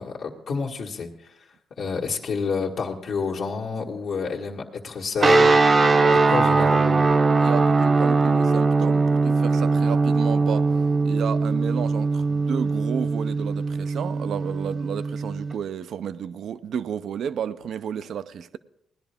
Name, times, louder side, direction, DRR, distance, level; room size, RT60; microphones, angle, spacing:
voice 1, 0.0-1.3 1.8-5.5 6.3-7.0, left 5 dB, 65° left, 1.7 m, -29 dB
sound 1, 5.2-15.5, right 3 dB, 35° right, 0.8 m, -20 dB
voice 2, 5.9-6.7 7.4-10.7 11.0-18.6, right 8 dB, 65° right, 0.5 m, -32 dB
18.0 x 10.5 x 3.5 m
cardioid pair, 90°, 0 cm